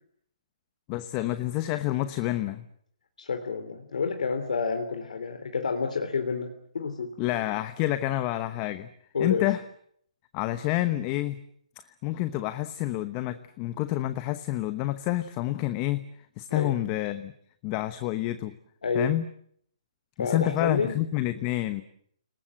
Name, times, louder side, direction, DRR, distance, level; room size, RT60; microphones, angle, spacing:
voice 1, 0.9-2.6 7.2-8.9 9.2-9.6 10.3-11.4 12.0-16.0 16.4-17.3 17.6-18.5 18.9-19.2 20.2-21.8, left 15 dB, 25° left, 12 dB, 1.1 m, -28 dB
voice 2, 3.2-7.1 9.1-9.5 16.5-16.8 18.8-19.1 20.2-20.9, left 5 dB, 75° left, 6 dB, 3.4 m, -29 dB
30.0 x 19.5 x 7.7 m, 0.66 s
hypercardioid pair, 155°, 4 cm